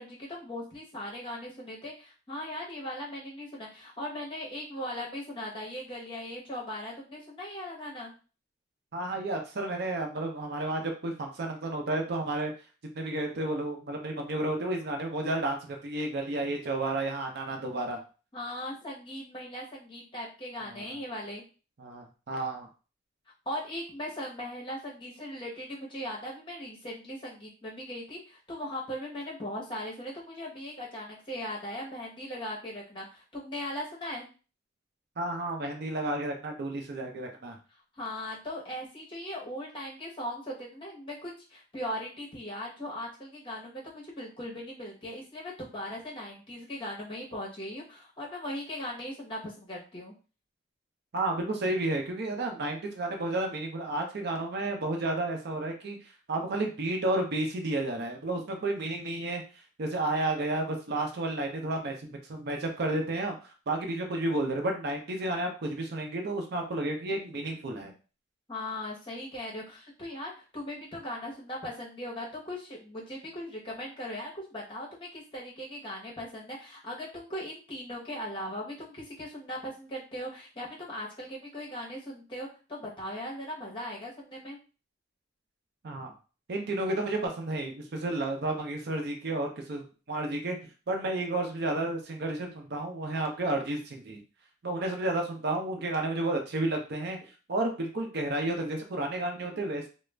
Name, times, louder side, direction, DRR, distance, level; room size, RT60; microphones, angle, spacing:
voice 1, 0.0-8.1 18.3-21.4 23.5-34.3 38.0-50.1 68.5-84.6, left 1 dB, 25° left, -4 dB, 0.9 m, -39 dB
voice 2, 8.9-12.5 12.9-18.0 20.6-21.0 21.8-22.7 35.2-37.6 51.1-59.4 59.8-67.9 85.8-86.1 86.5-90.6 90.9-94.2 94.6-97.2 97.5-99.9, right 2 dB, 55° right, 3 dB, 0.5 m, -31 dB
2.4 x 2.0 x 3.2 m, 0.34 s
head